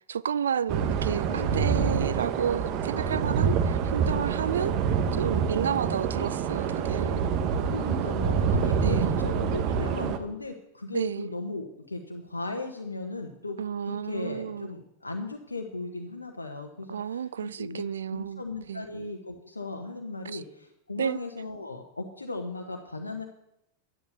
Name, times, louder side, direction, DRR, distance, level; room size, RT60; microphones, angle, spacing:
voice 1, 0.1-4.7 5.1-7.3 8.8-9.1 10.9-11.3 13.6-14.7 16.9-18.4 18.7-18.8 20.2-20.4 21.0-21.2, right 8 dB, 65° right, 0.5 m, -31 dB
sound 1, 0.7-10.2, right 6 dB, 40° right, 1.3 m, -26 dB
voice 2, 1.3-2.2 7.6-13.6 13.8-17.8 18.1-23.2, left 2 dB, 80° left, 1.3 m, -37 dB
11.5 x 10.5 x 6.8 m
figure-of-eight pair, 90°, 0 cm